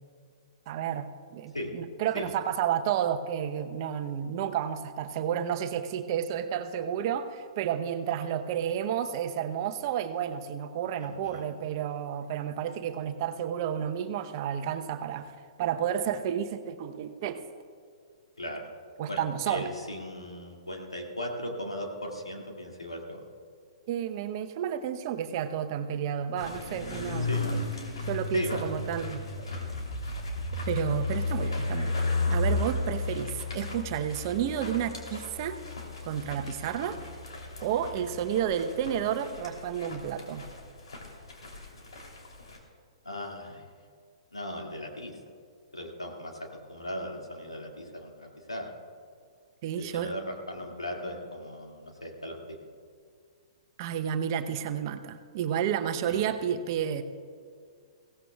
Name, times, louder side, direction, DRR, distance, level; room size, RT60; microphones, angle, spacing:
voice 1, 0.7-15.3 15.6-17.4 19.0-19.7 23.9-27.6 28.1-29.2 30.7-31.9 32.3-35.6 36.0-37.0 37.6-40.4 49.6-50.1 53.8-57.0, right 9 dB, 45° right, 8 dB, 0.8 m, -31 dB
voice 2, 11.0-11.5 18.4-18.7 19.1-23.2 27.3-27.6 28.3-28.7 32.6-32.7 36.9-37.0 38.0-38.1 43.0-43.6 44.3-45.2 45.7-48.7 49.8-52.6 56.1-56.2, left 1 dB, 90° left, 0 dB, 2.2 m, -37 dB
sound 1, 26.4-42.6, left 2 dB, 70° left, 3.1 m, -34 dB
22.0 x 17.0 x 2.3 m, 2.1 s
figure-of-eight pair, 115°, 3 cm